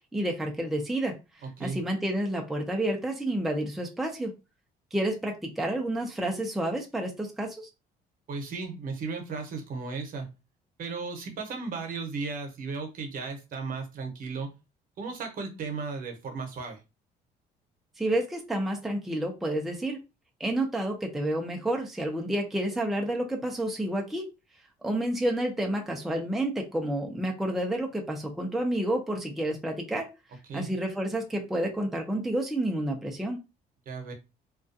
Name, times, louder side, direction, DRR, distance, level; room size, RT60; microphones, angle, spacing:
voice 1, 0.1-4.3 4.9-7.7 18.0-20.0 20.4-24.3 24.8-30.1 30.5-33.4, right 1 dB, ahead, 0.5 m, -30 dB
voice 2, 8.3-10.3 10.8-14.5 15.0-16.8 30.5-30.7 33.9-34.1, right 4 dB, 55° right, 0.8 m, -35 dB
2.3 x 2.2 x 2.6 m
cardioid pair, 110°, 17 cm